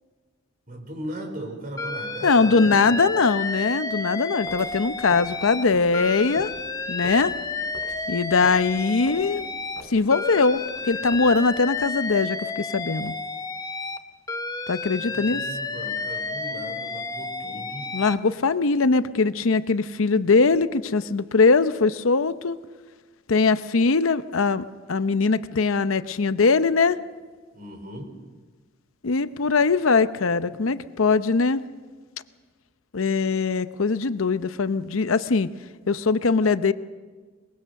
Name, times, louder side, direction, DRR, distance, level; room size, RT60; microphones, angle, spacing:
voice 1, 0.7-3.1 15.1-17.9 27.5-28.1, equal, 40° right, 4 dB, 4.0 m, -38 dB
Alarm, 1.8-5.6 5.9-9.8 10.1-14.0 14.3-18.2, left 3 dB, 15° left, 0.8 m, -31 dB
voice 2, 2.2-6.5 6.9-7.3 8.1-9.5 9.9-13.1 14.7-15.4 17.9-22.6 23.3-27.0 29.0-31.6 32.9-35.5 35.9-36.7, left 4 dB, 75° left, 13 dB, 0.7 m, -21 dB
sound 1, 4.4-11.9, right 1 dB, 90° right, 6.2 m, -45 dB
22.5 x 21.5 x 6.6 m, 1.4 s
head